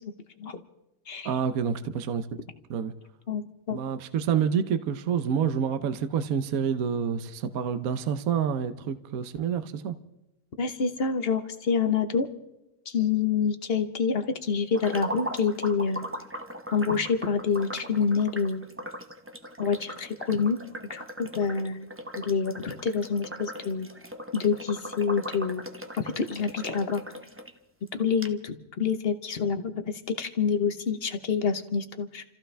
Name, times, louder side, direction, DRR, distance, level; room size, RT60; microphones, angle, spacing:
voice 1, 1.2-2.3 2.7-2.9 3.7-9.9, right 7 dB, 60° right, 10 dB, 1.1 m, -28 dB
voice 2, 3.3-3.8 10.6-12.3 12.9-16.1 16.7-18.7 19.6-20.6 20.9-21.9 22.2-23.9 24.3-25.6 26.0-27.0 27.9-32.2, left 6 dB, 45° left, 8 dB, 0.8 m, -27 dB
sound 1, 14.7-27.5 27.9-28.0 28.2-28.3, equal, 20° right, 0.3 m, -39 dB
29.0 x 15.0 x 3.3 m, 0.90 s
omnidirectional pair, 2.0 m